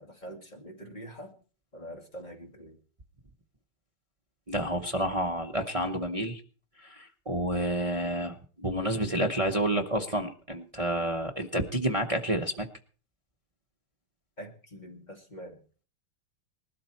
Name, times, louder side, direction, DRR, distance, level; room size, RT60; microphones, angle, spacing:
voice 1, 0.0-1.4 1.7-2.8 14.4-15.6, equal, 20° left, 2 dB, 2.1 m, -44 dB
voice 2, 4.5-6.4 6.8-12.7, right 1 dB, 40° right, 4 dB, 0.4 m, -29 dB
19.5 x 12.5 x 4.4 m, 0.40 s
omnidirectional pair, 2.4 m